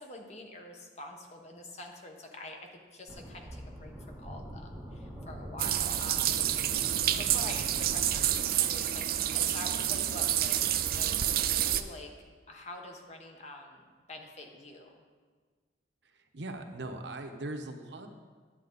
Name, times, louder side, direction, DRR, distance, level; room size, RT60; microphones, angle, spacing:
voice 1, 0.0-6.8 7.1-9.0 9.3-12.1 12.5-15.0, left 1 dB, 40° left, 2 dB, 1.1 m, -46 dB
sound 1, 3.1-8.3, equal, 5° left, 2.5 m, -44 dB
sound 2, 5.6-11.8, right 11 dB, 55° right, 0.4 m, -28 dB
voice 2, 16.0-18.1, right 2 dB, 85° right, 5 dB, 0.9 m, -40 dB
11.0 x 7.8 x 3.9 m, 1.5 s
head